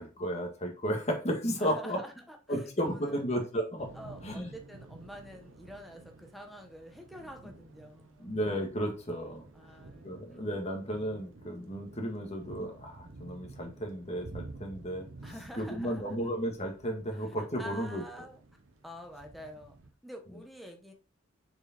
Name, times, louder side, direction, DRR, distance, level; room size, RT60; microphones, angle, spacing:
voice 1, 0.0-2.0 2.5-3.9 4.2-4.5 8.2-9.5 10.0-18.0, equal, 35° left, 2 dB, 1.8 m, -34 dB
voice 2, 1.6-3.2 3.9-8.3 9.5-10.2 15.2-16.2 17.1-18.4 18.8-19.8 20.0-20.9, equal, ahead, 3 dB, 1.2 m, -47 dB
Thunder / Rain, 3.8-19.9, right 2 dB, 80° right, 1.0 m, -51 dB
6.7 x 4.6 x 4.4 m, 0.33 s
head